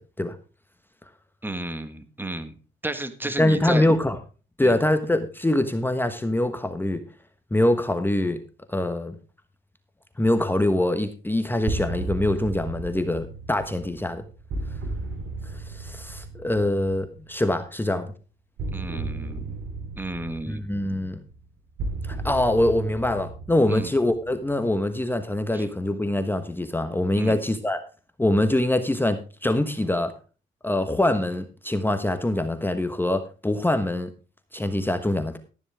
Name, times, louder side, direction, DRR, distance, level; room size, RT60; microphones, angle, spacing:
voice 1, 1.4-2.5 2.8-3.8 4.6-4.8 18.7-19.5 20.0-20.6 23.7-23.9 25.5-25.7 27.2-27.3, right 1 dB, 10° right, 10 dB, 1.6 m, -32 dB
voice 2, 3.4-4.2 4.6-7.0 7.5-8.4 8.7-9.1 10.2-14.2 15.7-18.1 20.5-21.2 22.0-27.8 28.2-30.1 30.6-34.1 34.5-35.4, left 1 dB, 10° left, 8 dB, 1.2 m, -24 dB
sound 1, 11.7-17.4 18.6-24.9, right 3 dB, 70° right, 3.7 m, -35 dB
13.0 x 11.0 x 3.5 m, 0.34 s
cardioid pair, 90°, 20 cm